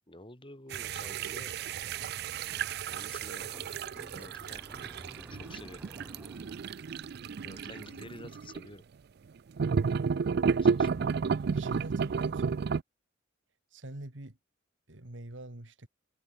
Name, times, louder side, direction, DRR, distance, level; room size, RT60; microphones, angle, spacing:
voice 1, 0.1-1.5 2.9-3.5 4.1-4.6 5.3-5.9 7.4-8.8 10.5-11.1, left 1 dB, 25° left, 6.0 m, -49 dB
sound 1, 0.7-8.7 9.6-12.8, right 5 dB, 55° right, 0.4 m, -32 dB
sound 2, 2.7-8.6, equal, 10° right, 2.3 m, -53 dB
voice 2, 11.5-12.6 13.7-14.4 14.9-15.9, right 1 dB, 70° right, 2.3 m, -45 dB
head